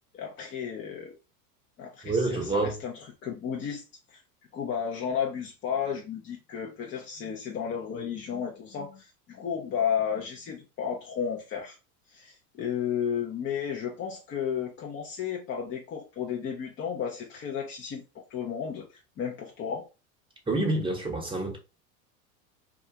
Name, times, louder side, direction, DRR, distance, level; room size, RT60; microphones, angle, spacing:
voice 1, 0.1-1.2 1.8-3.8 4.1-4.2 4.5-11.8 12.1-19.9, left 8 dB, 30° left, 0.5 m, -33 dB
voice 2, 2.0-2.8 20.5-21.6, right 2 dB, 10° right, 0.9 m, -27 dB
2.3 x 2.3 x 2.7 m
hypercardioid pair, 100°, 45 cm